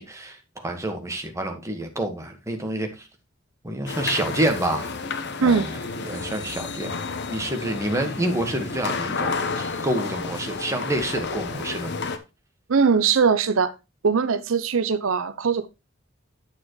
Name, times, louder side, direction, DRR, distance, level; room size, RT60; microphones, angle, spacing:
voice 1, 0.0-3.1 3.6-4.9 5.4-6.9 7.3-11.9, right 1 dB, 15° right, 1.5 m, -28 dB
sound 1, 3.9-12.2, left 4 dB, 60° left, 1.0 m, -31 dB
voice 2, 12.7-13.7 14.0-15.7, right 5 dB, 85° right, 0.6 m, -20 dB
9.0 x 7.4 x 3.1 m
head